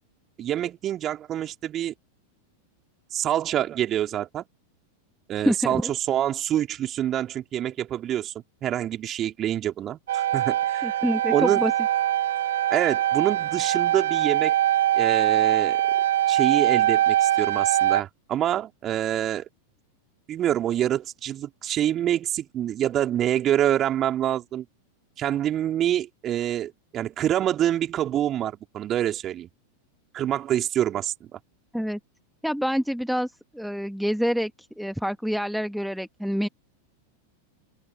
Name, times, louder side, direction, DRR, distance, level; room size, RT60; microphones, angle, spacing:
voice 1, 0.4-1.9 3.1-4.4 5.3-8.3 8.6-10.9 11.3-11.6 12.7-14.5 15.0-15.8 16.3-19.5 20.3-24.7 25.2-29.5 30.1-31.4, right 11 dB, 30° right, 3.9 m, -26 dB
voice 2, 5.4-5.9 10.8-11.7 31.7-32.0 32.4-34.5 34.8-36.5, equal, ahead, 1.5 m, -26 dB
sound 1, 10.1-18.0, right 12 dB, 60° right, 1.2 m, -22 dB
open air
figure-of-eight pair, 90°, 0 cm